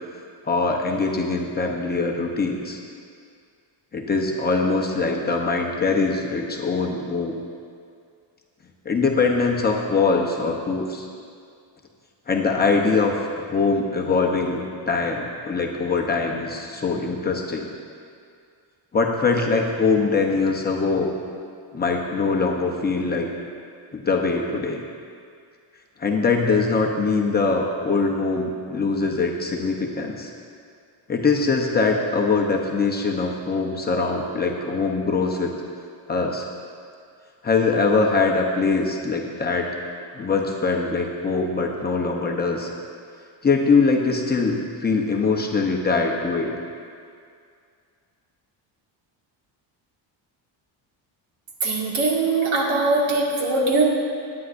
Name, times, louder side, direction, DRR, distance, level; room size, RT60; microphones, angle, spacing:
voice 1, 0.5-2.8 3.9-7.3 8.8-11.1 12.3-13.1 13.5-17.7 18.9-21.1 21.7-23.3 23.9-24.8 26.0-30.3 31.1-35.5 36.1-36.5 37.4-39.7 40.1-42.7 43.4-46.5, left 4 dB, 20° left, 0 dB, 0.8 m, -22 dB
voice 2, 51.6-53.8, right 3 dB, 80° right, -2 dB, 2.1 m, -21 dB
17.5 x 9.5 x 2.6 m, 2.3 s
cardioid pair, 160°, 46 cm